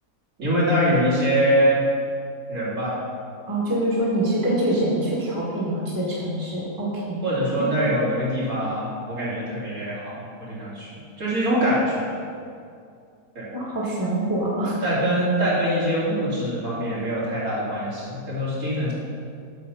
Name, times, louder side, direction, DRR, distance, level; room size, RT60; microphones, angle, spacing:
voice 1, 0.4-1.8 2.5-2.9 7.2-10.9 11.2-12.1 13.4-13.5 14.8-18.9, equal, 60° right, -9 dB, 3.3 m, -23 dB
voice 2, 3.5-7.2 7.6-7.9 13.5-14.7, right 1 dB, 15° right, -6 dB, 1.7 m, -25 dB
8.3 x 6.8 x 5.8 m, 2.3 s
omnidirectional pair, 1.7 m